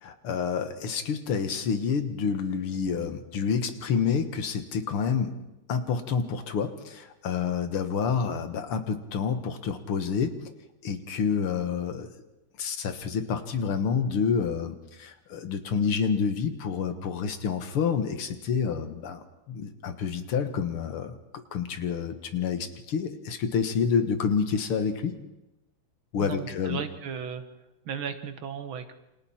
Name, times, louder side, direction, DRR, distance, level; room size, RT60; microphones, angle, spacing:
voice 1, 0.0-5.4 5.7-10.3 10.8-12.1 12.6-21.2 21.5-25.2 26.1-26.8, left 6 dB, 80° left, 8 dB, 2.4 m, -28 dB
voice 2, 26.2-27.4 27.9-28.9, right 7 dB, 70° right, 9 dB, 2.1 m, -35 dB
29.0 x 26.5 x 4.4 m, 0.98 s
omnidirectional pair, 2.4 m